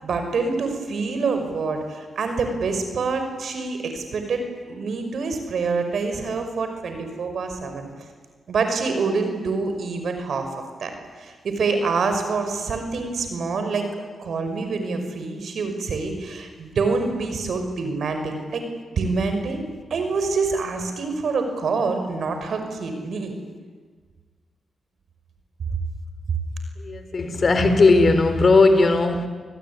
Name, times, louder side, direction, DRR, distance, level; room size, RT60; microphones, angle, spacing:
voice 1, 0.0-4.4 4.7-7.9 8.5-13.9 14.2-18.6 18.9-23.4, right 4 dB, 70° right, 6 dB, 5.7 m, -26 dB
voice 2, 26.8-29.3, left 3 dB, 50° left, 9 dB, 4.1 m, -17 dB
28.5 x 19.5 x 9.8 m, 1.5 s
cardioid pair, 55°, 0 cm